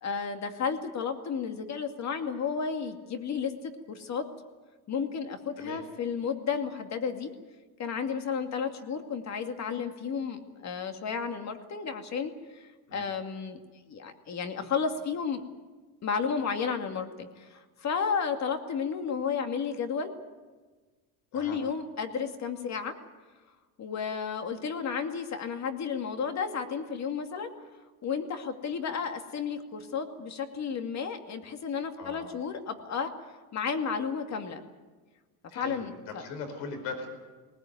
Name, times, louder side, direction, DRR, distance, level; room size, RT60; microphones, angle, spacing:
voice 1, 0.0-3.5 3.9-4.3 4.9-7.3 7.8-13.6 13.9-15.4 16.0-20.1 21.3-23.0 23.8-27.5 28.0-33.1 33.5-34.6 35.5-36.2, left 6 dB, 40° left, 6 dB, 2.4 m, -32 dB
voice 2, 32.0-32.3 35.5-37.1, left 4 dB, 75° left, 6 dB, 4.9 m, -40 dB
20.0 x 19.0 x 9.4 m, 1.4 s
cardioid pair, 120°, 42 cm